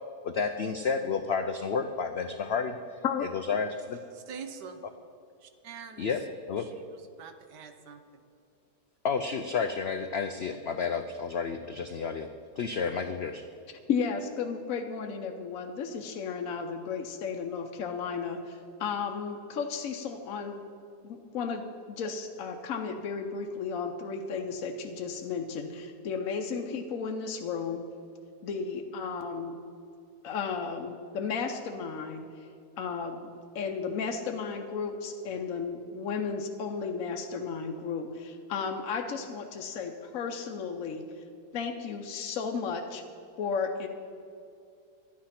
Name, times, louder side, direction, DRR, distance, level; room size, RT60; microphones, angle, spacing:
voice 1, 0.2-3.0 3.3-4.0 6.0-6.2 6.5-6.7 9.0-12.3 12.6-13.4, left 5 dB, 80° left, 8 dB, 0.5 m, -31 dB
voice 2, 4.0-4.8 5.4-6.2 6.6-8.2, right 6 dB, 85° right, 8 dB, 1.5 m, -45 dB
voice 3, 13.9-20.6 21.0-27.9 28.4-29.6 30.2-32.5 32.8-41.2 41.5-43.0 43.4-43.9, left 5 dB, 65° left, 3 dB, 1.0 m, -34 dB
11.5 x 9.8 x 5.8 m, 2.5 s
omnidirectional pair, 1.7 m